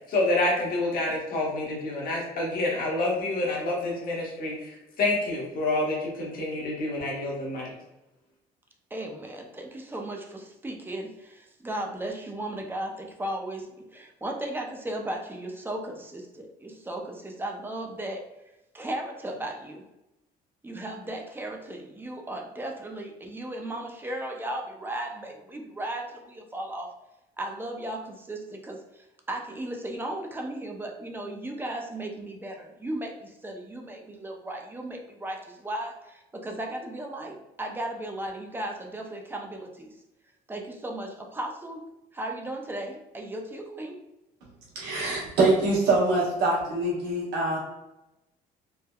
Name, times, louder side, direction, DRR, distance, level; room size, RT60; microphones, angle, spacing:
voice 1, 0.1-4.7 5.0-7.7, left 2 dB, 60° left, -2 dB, 1.0 m, -28 dB
voice 2, 8.9-18.2 18.7-19.8 20.6-26.9 27.4-39.9 40.5-41.8 42.1-44.0, right 1 dB, 10° right, 2 dB, 0.4 m, -36 dB
voice 3, 44.7-47.6, right 2 dB, 90° right, -5 dB, 1.1 m, -24 dB
3.4 x 2.1 x 2.2 m, 0.94 s
cardioid pair, 110°, 17 cm